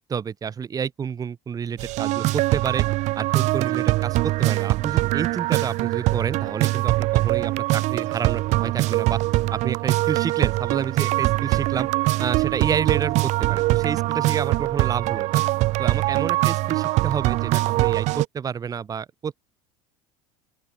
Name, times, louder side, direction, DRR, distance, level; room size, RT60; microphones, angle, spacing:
voice 1, 0.0-2.8 3.2-9.2 9.5-11.9 12.2-15.4 15.8-19.4, right 7 dB, 25° right, 4.1 m, -29 dB
sound 1, 1.8-18.2, right 19 dB, 55° right, 1.6 m, -22 dB
open air
cardioid pair, 135°, 14 cm